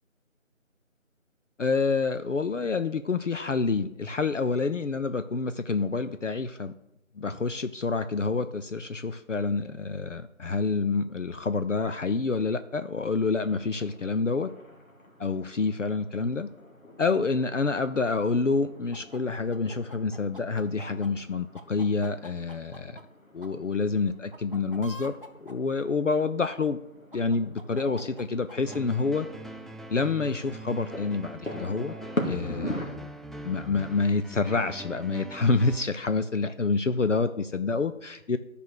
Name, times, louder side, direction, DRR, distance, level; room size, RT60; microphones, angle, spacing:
voice 1, 1.6-6.7 7.2-14.5 15.2-16.5 17.0-23.0 23.3-26.8 27.1-29.3 29.9-31.9 32.2-33.0 33.4-38.4, left 4 dB, 65° left, 10 dB, 0.6 m, -28 dB
sound 1, 13.4-32.9, left 1 dB, 90° left, 2.3 m, -42 dB
sound 2, 18.9-21.1 21.5-23.0 23.4-23.5 24.3-25.5 27.1-28.8, equal, 40° right, 1.0 m, -46 dB
sound 3, 28.7-35.8, right 2 dB, ahead, 0.3 m, -42 dB
11.0 x 5.1 x 6.5 m, 0.86 s
figure-of-eight pair, 170°, 40 cm